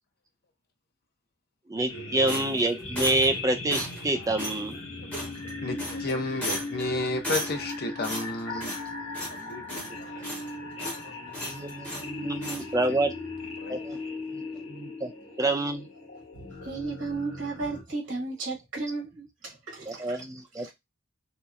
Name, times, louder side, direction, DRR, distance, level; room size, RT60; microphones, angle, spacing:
voice 1, 1.7-4.8 11.4-13.1 13.7-14.0 14.3-15.1 15.4-15.9 19.9-20.7, right 2 dB, 15° right, 0.4 m, -27 dB
sound 1, 1.9-17.8, left 2 dB, 85° left, 1.2 m, -39 dB
sound 2, 2.3-3.4 3.7-4.1 4.4-4.6 5.1-5.5 5.8-6.1 6.4-6.8 7.2-7.7 8.0-8.9 9.1-9.4 9.7-10.5 10.8-11.0 11.3-12.1 12.4-12.6, equal, 5° left, 0.7 m, -35 dB
voice 2, 5.6-8.7 9.3-10.3 10.8-11.1 13.6-13.8, left 2 dB, 45° left, 0.6 m, -32 dB
voice 3, 9.7-10.5 10.8-11.4 16.6-20.2 20.6-20.7, right 3 dB, 60° right, 1.1 m, -35 dB
2.8 x 2.0 x 2.3 m
head